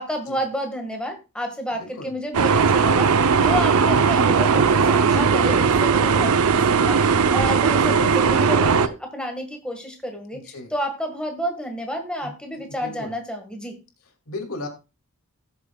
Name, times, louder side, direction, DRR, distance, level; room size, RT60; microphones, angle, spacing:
voice 1, 0.0-13.8, equal, 5° left, 4 dB, 1.6 m, -30 dB
voice 2, 1.7-2.1 5.0-5.3 10.3-10.7 12.2-13.2 14.3-14.7, left 2 dB, 80° left, 5 dB, 2.4 m, -37 dB
sound 1, 2.3-8.9, right 5 dB, 85° right, 0.6 m, -18 dB
18.0 x 7.0 x 2.3 m, 0.29 s
head